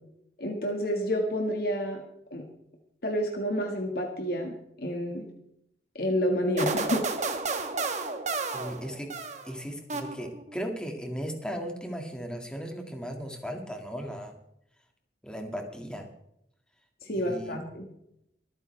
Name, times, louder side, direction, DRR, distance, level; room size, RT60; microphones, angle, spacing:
voice 1, 0.4-2.0 2.3-2.5 3.0-5.2 6.0-7.1 17.1-17.9, equal, 60° left, 1 dB, 1.8 m, -29 dB
sound 1, 6.6-9.5 9.9-10.5, right 3 dB, 40° right, 1.3 m, -31 dB
voice 2, 8.5-9.1 9.4-14.3 15.2-16.1 17.1-17.6, equal, 5° left, 2 dB, 2.1 m, -36 dB
24.0 x 9.6 x 3.4 m, 0.79 s
head